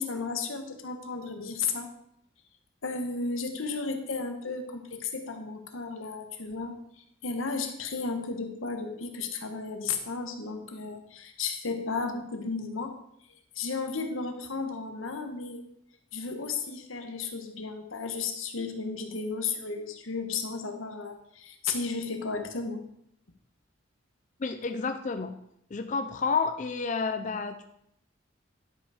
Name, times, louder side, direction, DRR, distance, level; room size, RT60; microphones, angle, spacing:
voice 1, 0.0-1.9 2.8-6.7 7.2-13.0 13.5-15.6 16.1-22.8, left 4 dB, 90° left, 5 dB, 1.3 m, -34 dB
voice 2, 24.4-25.3 25.7-27.6, left 4 dB, 40° left, 7 dB, 0.4 m, -30 dB
11.0 x 5.3 x 4.9 m, 0.74 s
head